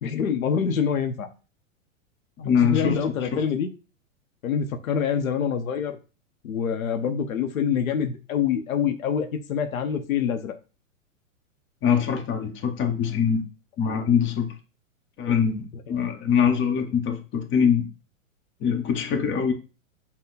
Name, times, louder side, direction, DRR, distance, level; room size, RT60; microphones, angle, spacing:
voice 1, 0.0-1.3 2.4-3.7 4.4-6.0 6.4-10.5, left 7 dB, 90° left, 8 dB, 0.7 m, -26 dB
voice 2, 2.4-3.4 11.8-13.4 13.8-14.5 15.2-17.8 18.6-19.5, left 7 dB, 30° left, 4 dB, 0.9 m, -23 dB
5.7 x 2.2 x 3.9 m, 0.33 s
hypercardioid pair, 120°, 40 cm